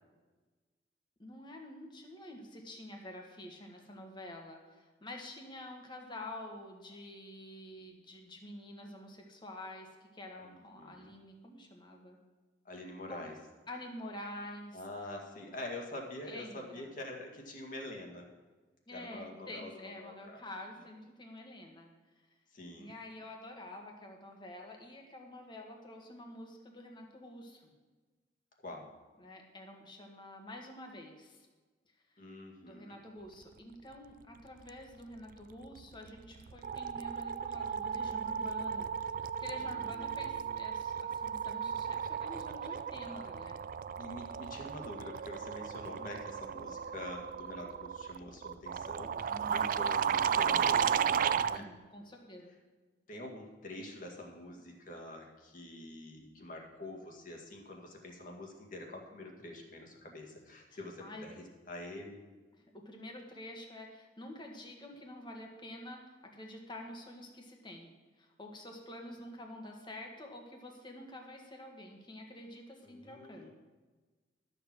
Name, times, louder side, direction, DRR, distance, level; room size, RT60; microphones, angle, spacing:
voice 1, 1.2-12.2 13.1-13.3 13.7-14.8 16.2-16.9 18.9-21.9 22.8-27.7 29.2-31.5 32.6-43.6 49.3-49.8 51.5-52.5 60.7-61.3 62.8-67.9 68.2-73.5, left 1 dB, 25° left, 2 dB, 1.6 m, -48 dB
voice 2, 10.4-11.1 12.7-13.3 14.7-18.3 18.9-20.4 22.5-22.9 28.6-28.9 32.2-33.0 39.6-40.5 43.1-43.2 44.0-51.7 53.1-62.2 72.8-73.5, left 1 dB, 45° left, 1 dB, 2.0 m, -46 dB
sound 1, 35.8-36.1 36.4-51.6, right 7 dB, 50° right, 0.3 m, -34 dB
12.5 x 6.9 x 6.1 m, 1.3 s
head